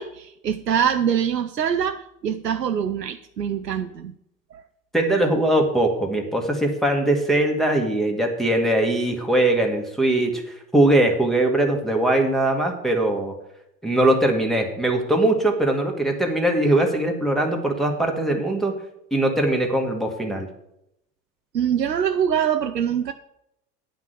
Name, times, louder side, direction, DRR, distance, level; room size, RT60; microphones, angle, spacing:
voice 1, 0.0-4.1 4.5-4.6 21.5-23.1, right 8 dB, 90° right, 0.6 m, -24 dB
voice 2, 4.9-10.4 10.7-13.3 13.8-18.7 19.1-20.5, right 1 dB, ahead, 1.8 m, -21 dB
10.0 x 5.9 x 7.6 m
figure-of-eight pair, 75°, 48 cm